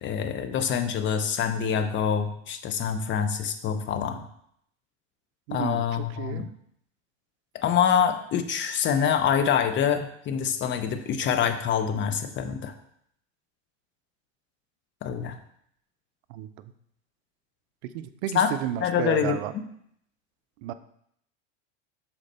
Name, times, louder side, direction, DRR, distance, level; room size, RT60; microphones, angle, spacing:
voice 1, 0.0-4.2 5.5-6.5 7.5-12.7 15.0-15.4 18.3-18.5 18.8-19.6, left 8 dB, 30° left, 9 dB, 0.7 m, -26 dB
voice 2, 5.5-6.5 16.3-16.7 17.9-19.5 20.6-20.7, right 11 dB, 60° right, 12 dB, 0.6 m, -32 dB
6.4 x 4.3 x 4.2 m, 0.70 s
hypercardioid pair, 95°, 38 cm